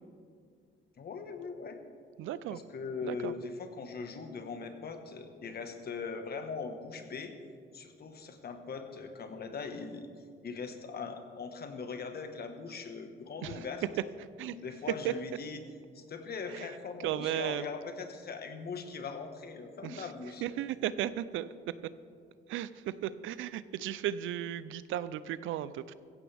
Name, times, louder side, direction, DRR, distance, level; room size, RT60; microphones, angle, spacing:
voice 1, 1.0-1.8 2.5-7.3 7.7-10.1 10.4-13.8 14.5-15.7 15.9-20.4, left 5 dB, 55° left, 6 dB, 1.5 m, -40 dB
voice 2, 2.2-2.6 3.0-3.3 13.4-13.6 14.4-14.6 15.0-15.1 16.5-16.7 17.0-17.7 19.8-20.1 20.4-21.7 22.5-25.9, right 12 dB, 85° right, 16 dB, 0.5 m, -35 dB
16.0 x 15.0 x 3.5 m, 2.2 s
cardioid pair, 90°, 20 cm